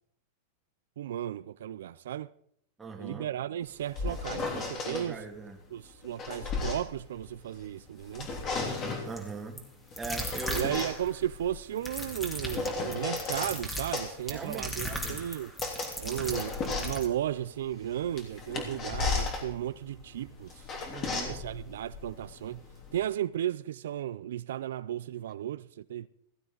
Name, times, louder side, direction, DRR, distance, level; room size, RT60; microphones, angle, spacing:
voice 1, 1.0-2.3 3.0-5.2 5.7-8.3 10.5-15.5 16.0-20.5 21.3-22.6 22.9-26.1, right 11 dB, 80° right, 0.4 m, -34 dB
voice 2, 2.8-3.3 4.8-5.6 9.0-9.7 10.0-10.8 14.3-15.2 16.0-16.7 20.9-21.4, right 4 dB, 10° right, 2.1 m, -41 dB
Squeaky office chair, 3.7-5.1 5.9-7.7 8.0-9.1 9.9-13.6 13.9-23.0, left 4 dB, 30° left, 3.4 m, -35 dB
sound 1, 9.2-9.3 9.6-9.7 10.0-11.1 11.8-17.1, equal, 10° left, 2.8 m, -37 dB
15.5 x 15.5 x 4.0 m
supercardioid pair, 145°, 0 cm